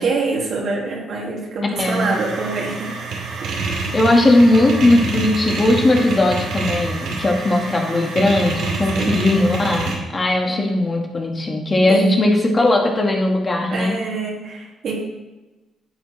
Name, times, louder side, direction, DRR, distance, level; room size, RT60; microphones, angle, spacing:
voice 1, 0.0-2.9 3.3-4.0 8.9-9.5 10.5-10.6 11.9-12.3 13.7-14.9, right 3 dB, 60° right, -2 dB, 2.4 m, -25 dB
sound 1, 1.8-9.9, right 3 dB, 85° right, 2.3 m, -27 dB
voice 2, 3.9-13.9, left 2 dB, 25° left, 1 dB, 1.6 m, -18 dB
9.9 x 7.2 x 3.2 m, 1.1 s
cardioid pair, 90°, 0 cm